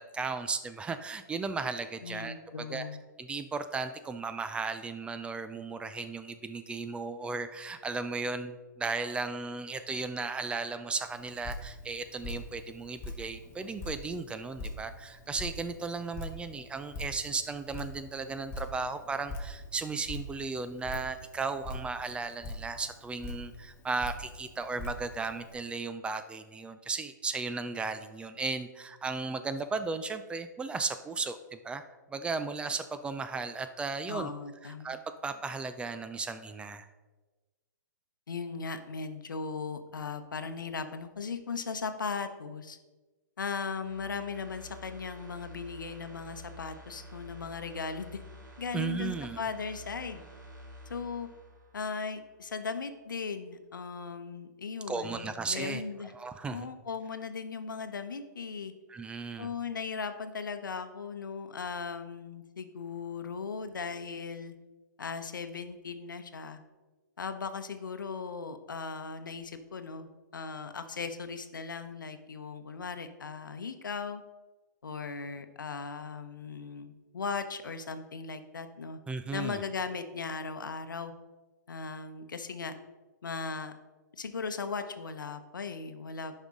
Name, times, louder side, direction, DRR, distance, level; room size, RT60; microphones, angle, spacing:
voice 1, 0.0-2.8 3.2-31.8 32.1-34.3 34.6-35.0 35.2-36.9 48.7-49.4 54.9-55.8 56.1-56.7 58.9-59.5 79.1-79.6, right 4 dB, 10° right, 10 dB, 0.4 m, -35 dB
voice 2, 2.0-3.0 34.1-35.0 38.3-42.8 43.4-48.2 48.6-50.2 50.9-51.3 51.7-56.1 56.5-58.7 59.4-64.5 65.0-66.6 67.2-74.2 74.8-79.0 79.3-81.1 81.7-82.7 83.2-83.7 84.1-86.3, left 5 dB, 90° left, 9 dB, 0.8 m, -38 dB
Drip, 11.0-25.5, left 1 dB, 20° left, 1.3 m, -43 dB
sound 1, 43.8-52.5 52.9-53.0, equal, 75° right, 2.0 m, -50 dB
10.5 x 5.4 x 3.7 m, 1.2 s
hypercardioid pair, 130°, 10 cm